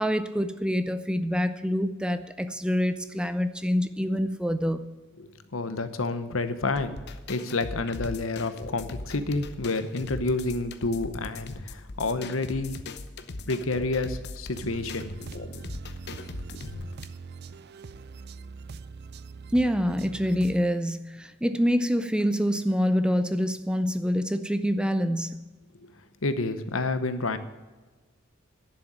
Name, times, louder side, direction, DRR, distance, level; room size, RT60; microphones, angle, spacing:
voice 1, 0.0-4.8 19.5-25.5, equal, 5° right, 11 dB, 0.5 m, -26 dB
voice 2, 5.5-7.0 7.3-12.8 13.5-15.1 26.2-27.4, left 3 dB, 85° left, 11 dB, 1.0 m, -29 dB
sound 1, 6.8-17.0, left 2 dB, 55° left, 0.8 m, -39 dB
sound 2, 14.5-20.6, right 5 dB, 55° right, 0.5 m, -42 dB
11.5 x 6.9 x 9.1 m, 1.2 s
head